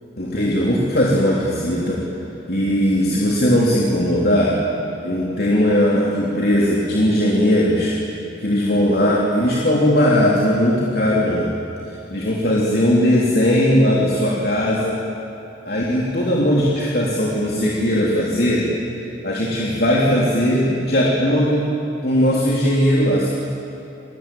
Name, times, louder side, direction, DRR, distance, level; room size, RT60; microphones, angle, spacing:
voice 1, 0.2-2.0 2.5-4.5 5.0-7.9 8.4-11.5 12.1-15.0 15.6-18.7 19.2-21.6 22.0-23.3, equal, 60° left, -4 dB, 3.4 m, -18 dB
29.0 x 21.0 x 9.2 m, 2.9 s
head